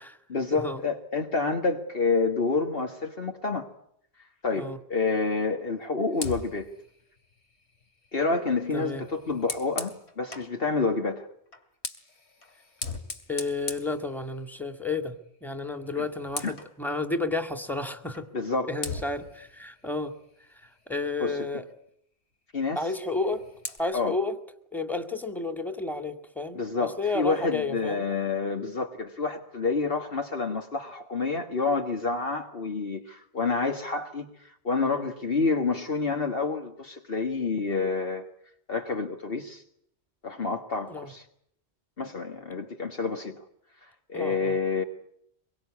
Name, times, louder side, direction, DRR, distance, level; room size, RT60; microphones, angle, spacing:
voice 1, 0.3-3.7 4.2-6.7 8.1-11.3 16.0-16.1 16.4-16.5 18.3-18.8 21.2-21.6 22.5-22.9 23.9-24.2 26.5-38.3 38.7-39.6 40.2-41.3 42.0-43.5 43.8-44.8, left 4 dB, 60° left, 4 dB, 1.9 m, -28 dB
Fire, 6.1-10.6 11.5-14.7 15.1-15.4 15.7-16.8 18.1-18.3 18.8-21.1 23.0-23.8, left 3 dB, 75° left, 2.7 m, -40 dB
voice 2, 8.7-9.0 13.3-18.3 18.7-20.1 20.5-21.6 22.8-23.5 23.8-24.4 24.7-28.1 40.9-41.1 44.1-44.5, left 3 dB, ahead, 7 dB, 2.0 m, -31 dB
25.0 x 23.0 x 8.6 m, 0.71 s
omnidirectional pair, 1.1 m